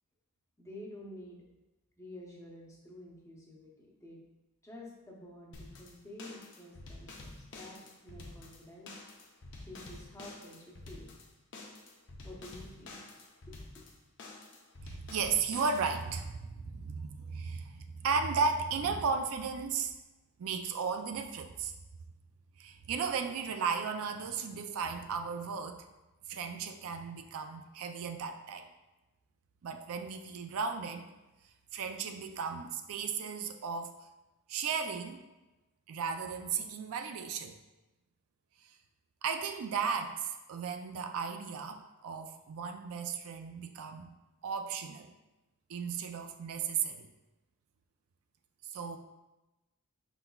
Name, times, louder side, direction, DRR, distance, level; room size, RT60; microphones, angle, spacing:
voice 1, 0.6-1.5 2.0-4.2 4.6-9.0 9.6-11.1 12.2-13.1 13.5-13.8, left 1 dB, 15° left, -2 dB, 0.8 m, -50 dB
sound 1, 5.5-16.2, left 2 dB, 55° left, 0.7 m, -49 dB
voice 2, 14.8-19.9 20.4-21.7 22.6-25.9 26.3-28.7 29.6-31.1 31.7-33.9 34.5-35.2 35.9-37.5 38.6-38.7 39.2-44.1 44.4-45.1 45.7-47.1 48.7-49.0, right 5 dB, 65° right, 6 dB, 0.4 m, -35 dB
5.3 x 3.9 x 2.3 m, 1.0 s
head